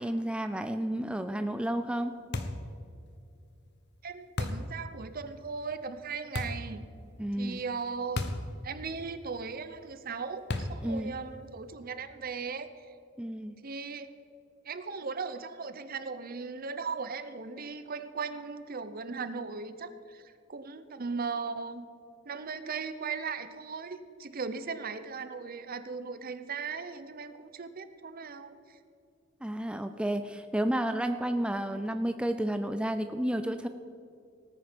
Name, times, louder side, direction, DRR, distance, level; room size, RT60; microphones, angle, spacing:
voice 1, 0.0-2.1 7.2-7.6 10.8-11.1 13.2-13.6 29.4-33.7, right 1 dB, 5° right, 8 dB, 0.4 m, -31 dB
sound 1, 2.3-2.7 4.4-4.7 6.3-6.7 8.2-8.5 8.8-8.9 10.5-10.9, left 2 dB, 60° left, 1.0 m, -33 dB
voice 2, 4.0-6.8 7.4-8.3 8.6-12.9 13.6-14.1 14.6-21.9 22.2-28.8, right 5 dB, 45° right, 12 dB, 0.7 m, -38 dB
18.5 x 9.3 x 5.2 m, 2.5 s
head